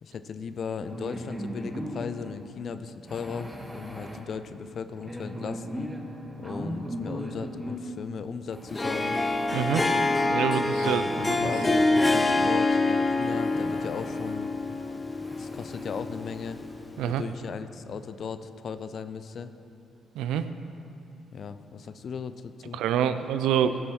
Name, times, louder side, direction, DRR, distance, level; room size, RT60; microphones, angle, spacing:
voice 1, 0.0-5.9 6.4-9.2 10.7-14.5 15.4-16.6 17.1-19.5 21.3-22.8, left 6 dB, 55° left, 11 dB, 0.5 m, -37 dB
sound 1, 0.8-2.3 3.1-4.2 4.9-7.8 8.5-10.3 11.0-12.5 13.2-14.3 14.8-14.9 15.2-16.0, equal, 10° right, 1.4 m, -38 dB
Harp, 8.7-17.0, left 2 dB, 25° left, 0.9 m, -26 dB
voice 2, 9.5-9.8 10.3-11.5 17.0-17.2 20.2-20.4 22.7-23.8, right 9 dB, 75° right, 11 dB, 0.4 m, -26 dB
15.0 x 6.3 x 4.4 m, 2.7 s
hypercardioid pair, 50°, 0 cm